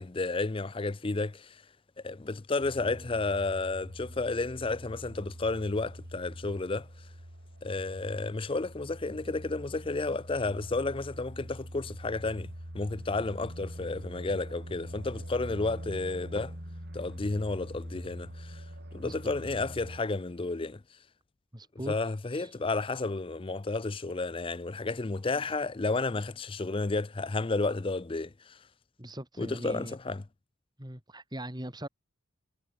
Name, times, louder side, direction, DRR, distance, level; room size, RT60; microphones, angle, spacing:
voice 1, 0.0-1.6 2.0-6.9 7.6-16.6 16.9-18.6 18.9-20.8 21.9-28.6 29.4-30.2, left 3 dB, 25° left, 0.5 m, -32 dB
sound 1, 2.6-20.0, equal, 45° right, 5.8 m, -44 dB
voice 2, 19.0-19.3 21.5-21.9 22.3-22.5 29.0-30.0 30.8-31.9, right 1 dB, 20° right, 3.4 m, -40 dB
head